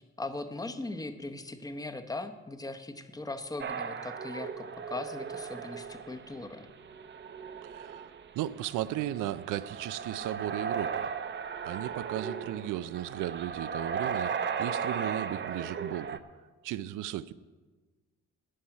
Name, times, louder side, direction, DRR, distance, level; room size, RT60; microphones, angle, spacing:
voice 1, 0.0-6.7, left 2 dB, 10° left, 7 dB, 0.9 m, -39 dB
sound 1, 3.6-16.2, right 6 dB, 40° right, 0.7 m, -36 dB
voice 2, 7.6-8.1 8.3-11.1 11.6-14.3 14.6-16.2 16.6-17.3, right 13 dB, 85° right, 16 dB, 0.5 m, -35 dB
11.5 x 5.7 x 8.9 m, 1.3 s
cardioid pair, 90°, 30 cm